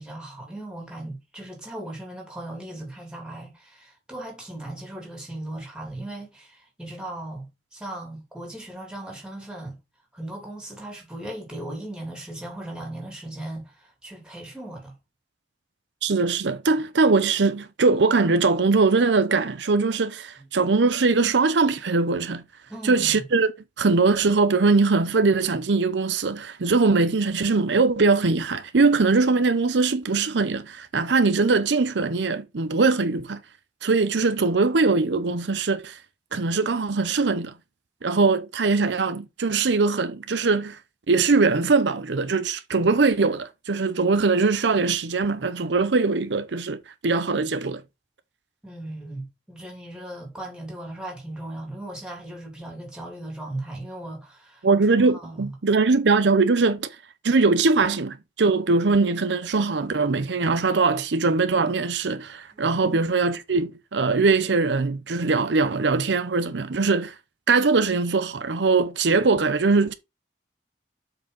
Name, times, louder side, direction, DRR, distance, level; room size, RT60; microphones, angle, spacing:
voice 1, 0.0-9.8 10.1-14.9 20.4-20.5 22.7-23.2 48.6-54.6 55.0-55.5 57.9-58.0 62.5-63.2, right 1 dB, 5° right, 2.9 m, -37 dB
voice 2, 16.0-22.4 22.8-23.5 23.8-33.4 33.8-36.0 36.3-37.5 38.0-40.8 41.1-47.8 54.6-56.9 57.2-67.1 67.5-69.9, right 4 dB, 80° right, 0.7 m, -21 dB
7.6 x 4.7 x 3.9 m
head